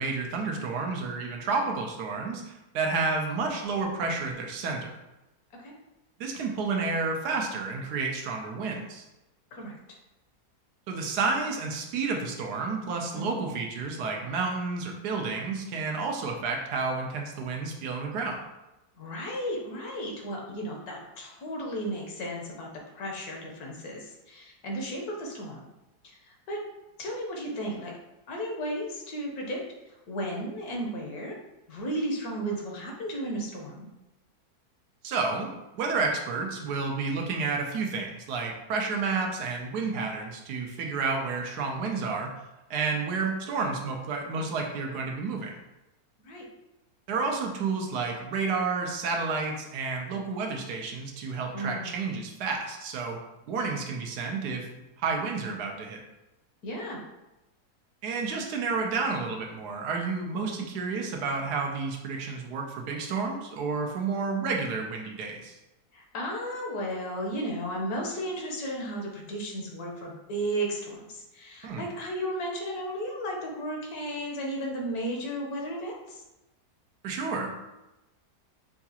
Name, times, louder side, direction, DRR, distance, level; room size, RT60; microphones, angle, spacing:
voice 1, 0.0-5.0 6.2-9.0 10.9-18.4 35.0-42.3 42.7-45.5 47.1-53.2 53.5-54.7 55.0-56.0 58.0-65.6 71.6-71.8 77.0-77.5, right 4 dB, 85° right, 1 dB, 1.2 m, -30 dB
voice 2, 19.0-22.7 22.9-25.6 26.0-26.6 27.0-27.9 28.3-29.6 30.1-31.3 31.7-33.9 46.2-46.4 51.5-51.9 56.6-57.0 60.3-60.6 65.9-76.2, right 1 dB, 70° left, 0 dB, 1.4 m, -34 dB
5.7 x 2.3 x 2.8 m, 0.99 s
omnidirectional pair, 1.7 m